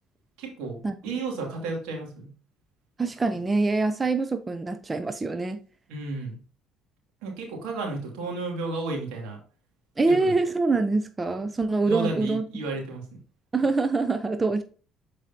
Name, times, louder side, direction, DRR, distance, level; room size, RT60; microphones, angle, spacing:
voice 1, 0.4-2.3 5.9-6.4 7.2-9.4 10.1-10.4 11.8-13.0, right 3 dB, 85° right, 2.5 m, -33 dB
voice 2, 3.0-5.6 10.0-12.4 13.5-14.6, right 3 dB, 25° right, 0.6 m, -25 dB
7.4 x 4.8 x 2.9 m
supercardioid pair, 75°, 0 cm